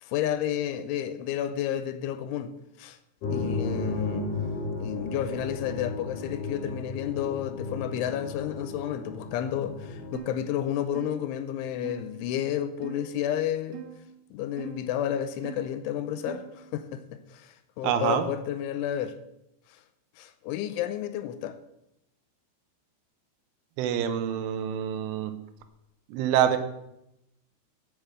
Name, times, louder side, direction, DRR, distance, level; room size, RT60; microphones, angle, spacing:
voice 1, 0.0-2.5 2.8-3.0 3.3-4.3 4.8-13.8 14.3-17.0 17.3-19.2 20.2-21.6, left 10 dB, 80° left, 2.9 m, -31 dB
sound 1, 3.2-10.1, left 3 dB, 55° left, 2.5 m, -34 dB
sound 2, 10.1-10.4 10.9-11.2 11.8-12.0 12.8-13.1 13.7-14.0 14.6-14.8 15.4-15.7 16.3-16.6, right 12 dB, 65° right, 2.7 m, -41 dB
voice 2, 17.8-18.2 23.8-25.3 26.1-26.6, right 10 dB, 80° right, 3.3 m, -26 dB
10.5 x 6.6 x 7.8 m
omnidirectional pair, 5.8 m